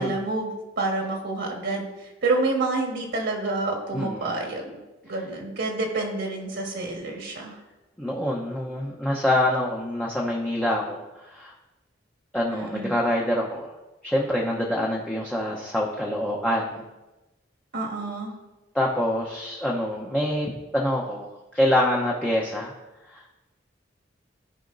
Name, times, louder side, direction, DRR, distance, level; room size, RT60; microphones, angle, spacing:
voice 1, 0.0-1.9 2.2-4.8 5.1-7.5 12.5-12.9 17.7-18.3, right 2 dB, 65° right, 0 dB, 1.5 m, -28 dB
voice 2, 3.9-4.4 8.0-11.0 11.3-11.5 12.3-13.7 14.0-16.8 18.7-21.3 21.5-22.7 23.1-23.2, left 1 dB, 5° left, -3 dB, 0.8 m, -25 dB
14.5 x 5.0 x 2.6 m, 1.1 s
head